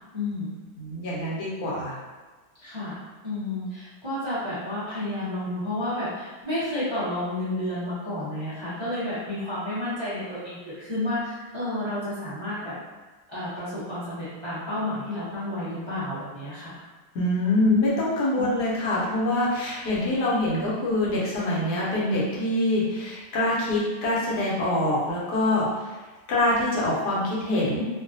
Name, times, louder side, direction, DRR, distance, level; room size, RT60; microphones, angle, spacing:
voice 1, 0.1-0.6 2.6-12.8 13.3-16.8 18.4-18.5, left 1 dB, 30° right, -12 dB, 0.5 m, -31 dB
voice 2, 0.8-2.0 17.1-26.0 26.3-27.9, left 1 dB, 75° left, -6 dB, 1.3 m, -25 dB
3.1 x 2.2 x 2.5 m, 1.3 s
omnidirectional pair, 1.8 m